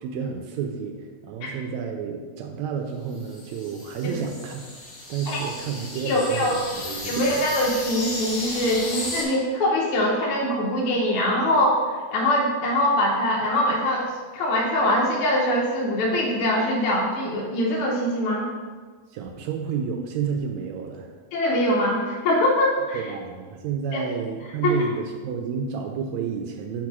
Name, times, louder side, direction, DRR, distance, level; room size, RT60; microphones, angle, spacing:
voice 1, 0.0-4.6 5.1-7.3 19.1-21.2 22.9-26.9, right 6 dB, 80° right, 4 dB, 1.7 m, -30 dB
sound 1, 3.1-9.2, left 2 dB, 45° left, 1.9 m, -34 dB
voice 2, 6.0-6.6 7.0-18.5 21.3-23.0 23.9-24.1 24.6-24.8, left 1 dB, 80° left, -2 dB, 1.2 m, -23 dB
4.7 x 4.5 x 6.0 m, 1.5 s
omnidirectional pair, 3.5 m